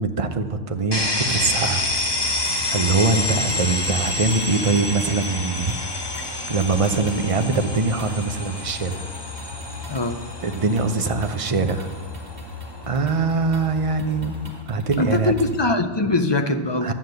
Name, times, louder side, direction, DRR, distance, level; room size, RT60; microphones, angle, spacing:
voice 1, 0.0-2.3 2.7-5.9 6.5-9.0 10.4-11.9 12.9-14.3 14.7-15.3 16.8-16.9, right 4 dB, 35° right, 7 dB, 0.7 m, -23 dB
sound 1, 0.9-14.6, left 2 dB, 20° left, 1.1 m, -29 dB
sound 2, 1.0-15.6, left 4 dB, 55° right, 2.1 m, -39 dB
voice 2, 15.0-16.9, left 2 dB, 40° left, 7 dB, 0.4 m, -22 dB
11.5 x 7.3 x 7.9 m, 1.5 s
omnidirectional pair, 1.3 m